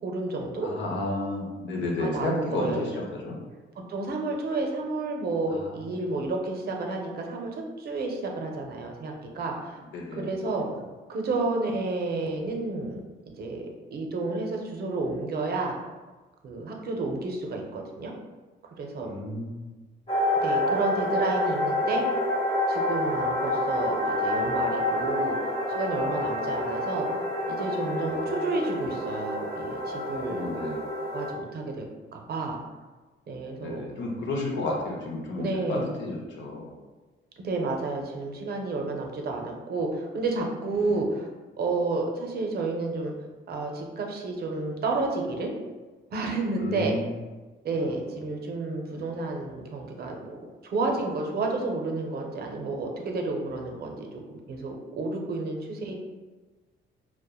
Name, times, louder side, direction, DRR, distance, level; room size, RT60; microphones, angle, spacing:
voice 1, 0.0-0.7 2.0-2.9 3.9-9.8 10.1-10.7 11.1-13.0 13.4-13.6 13.9-15.8 16.4-18.1 18.8-19.1 20.4-22.0 22.7-27.1 27.5-30.5 31.1-31.8 32.1-32.6 33.3-33.9 35.4-35.9 37.4-41.3 41.6-43.1 43.5-45.5 46.1-46.9 47.6-50.4 50.6-54.1 54.5-55.9, right 3 dB, 50° right, 1 dB, 0.5 m, -31 dB
voice 2, 0.6-3.4 5.5-5.7 9.9-10.4 19.0-19.8 28.1-28.2 30.2-30.8 33.6-36.7 40.8-41.0 46.6-47.1 48.9-49.2, left 2 dB, 70° left, -1 dB, 0.6 m, -32 dB
sound 1, 20.1-31.3, left 1 dB, 30° left, 0.8 m, -28 dB
2.8 x 2.1 x 2.2 m, 1.3 s
cardioid pair, 90°, 20 cm